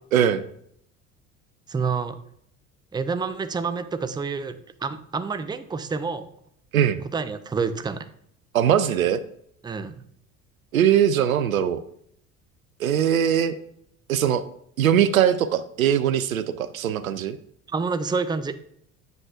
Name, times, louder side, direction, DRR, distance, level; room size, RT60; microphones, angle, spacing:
voice 1, 0.1-0.5 6.7-7.0 8.5-9.2 10.7-11.8 12.8-13.5 14.1-14.4 14.8-17.4, right 9 dB, 85° right, 13 dB, 0.5 m, -21 dB
voice 2, 1.7-2.2 2.9-6.3 7.1-8.1 9.6-10.0 17.7-18.5, right 5 dB, 10° right, 11 dB, 0.5 m, -28 dB
7.7 x 7.6 x 2.4 m, 0.68 s
figure-of-eight pair, 60°, 40 cm